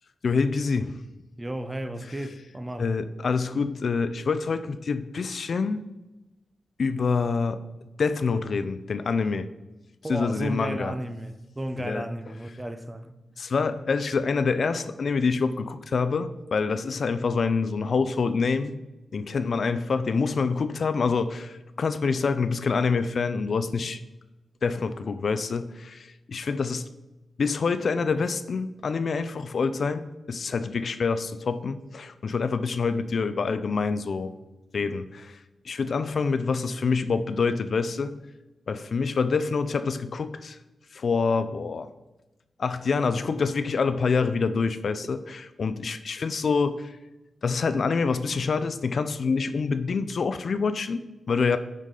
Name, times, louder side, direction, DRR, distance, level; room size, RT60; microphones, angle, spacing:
voice 1, 0.2-1.0 2.8-5.8 6.8-7.6 8.0-9.5 10.1-10.9 11.8-12.1 13.4-18.7 19.1-24.0 24.6-26.8 27.4-30.0 30.3-34.3 34.7-35.4 35.6-38.1 38.7-40.6 40.9-41.9 42.6-47.0 47.4-51.6, left 4 dB, 55° left, 0.4 m, -26 dB
voice 2, 1.4-2.9 10.0-13.1, right 1 dB, 15° right, 0.5 m, -33 dB
9.5 x 4.9 x 3.8 m
wide cardioid pair, 110°, 0 cm